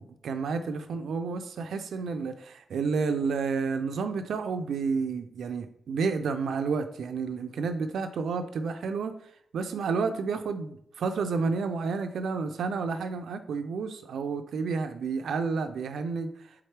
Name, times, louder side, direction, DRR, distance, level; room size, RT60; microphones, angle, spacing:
voice 1, 0.0-9.1 9.5-16.5, right 5 dB, 85° right, 8 dB, 0.3 m, -30 dB
4.5 x 3.5 x 3.2 m, 0.73 s
cardioid pair, 80°, 0 cm